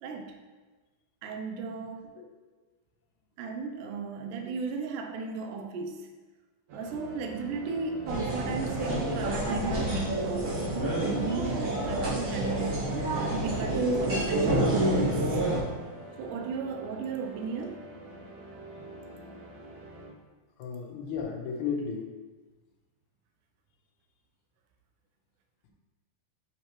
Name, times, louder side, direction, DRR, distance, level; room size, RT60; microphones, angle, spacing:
voice 1, 0.0-0.4 1.2-2.1 3.4-6.1 6.7-15.5 16.2-17.8, right 5 dB, 80° right, 4 dB, 1.9 m, -35 dB
sound 1, 6.7-20.1, right 1 dB, 65° right, 2.6 m, -46 dB
sound 2, 8.1-15.6, right 1 dB, 40° right, 1.9 m, -28 dB
voice 2, 20.6-22.1, left 6 dB, 75° left, -2 dB, 1.8 m, -34 dB
7.4 x 4.6 x 3.0 m, 1.2 s
omnidirectional pair, 4.5 m